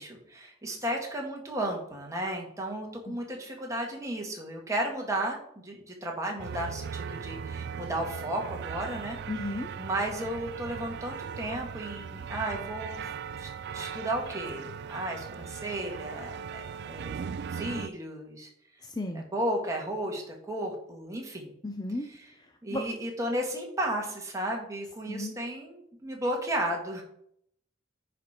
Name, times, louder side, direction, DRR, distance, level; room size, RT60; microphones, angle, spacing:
voice 1, 0.0-9.2 9.5-13.1 13.4-17.1 17.5-18.5 19.1-21.5 22.1-22.2 22.6-27.0, right 1 dB, 15° right, 0 dB, 1.8 m, -34 dB
sound 1, 6.4-17.9, right 6 dB, 55° right, 0.3 m, -38 dB
voice 2, 9.3-9.7 18.8-19.2 21.6-22.1 22.7-22.8 25.1-25.3, left 2 dB, 20° left, 5 dB, 0.6 m, -33 dB
9.7 x 5.1 x 4.3 m, 0.69 s
head